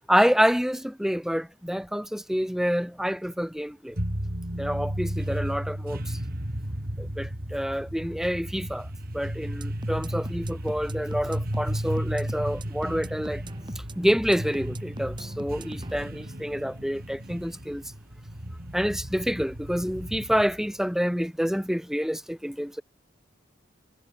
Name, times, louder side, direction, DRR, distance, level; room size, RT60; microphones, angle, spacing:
voice 1, 0.1-4.0 4.6-6.2 7.0-8.9 9.1-13.4 14.0-17.8 18.7-22.8, equal, ahead, 2.6 m, -27 dB
sound 1, 4.0-20.8, equal, 50° right, 3.7 m, -34 dB
sound 2, 9.5-16.0, right 1 dB, 25° right, 7.5 m, -41 dB
head